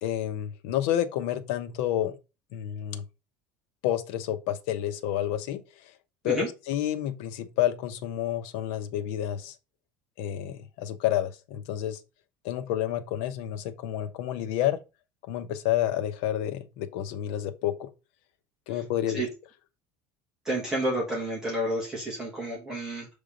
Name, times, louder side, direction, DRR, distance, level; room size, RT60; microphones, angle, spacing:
voice 1, 0.0-2.2 2.5-3.0 3.8-5.6 6.2-9.5 10.2-12.0 12.4-14.8 15.3-17.9 18.7-19.2, left 11 dB, 80° left, 1.0 m, -29 dB
voice 2, 20.5-23.1, right 1 dB, 10° right, 1.8 m, -30 dB
6.8 x 3.5 x 5.1 m
cardioid pair, 180°, 7 cm